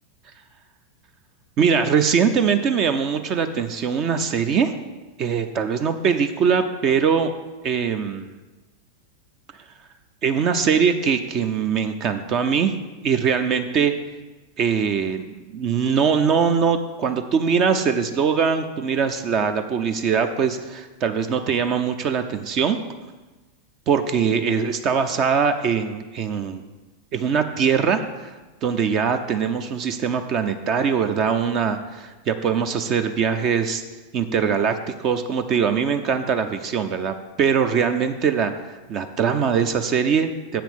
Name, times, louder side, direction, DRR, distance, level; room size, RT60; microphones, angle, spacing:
voice 1, 1.6-4.7 5.2-7.3 7.6-8.4 10.2-12.7 13.0-13.9 14.6-22.8 23.9-26.6 27.1-28.3 28.6-33.8 34.1-40.6, right 6 dB, 35° right, 8 dB, 0.6 m, -22 dB
7.6 x 5.9 x 7.0 m, 1.2 s
figure-of-eight pair, 90°, 0 cm